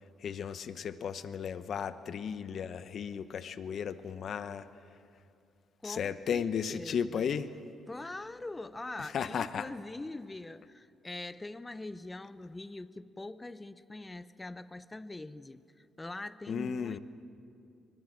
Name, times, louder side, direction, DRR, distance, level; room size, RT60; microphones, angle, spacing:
voice 1, 0.2-4.7 5.8-7.5 9.0-9.7 16.5-17.0, left 7 dB, 60° left, 12 dB, 0.9 m, -35 dB
voice 2, 5.8-7.3 7.9-17.0, left 2 dB, 15° left, 14 dB, 0.8 m, -43 dB
24.0 x 20.5 x 7.4 m, 2.5 s
cardioid pair, 90°, 0 cm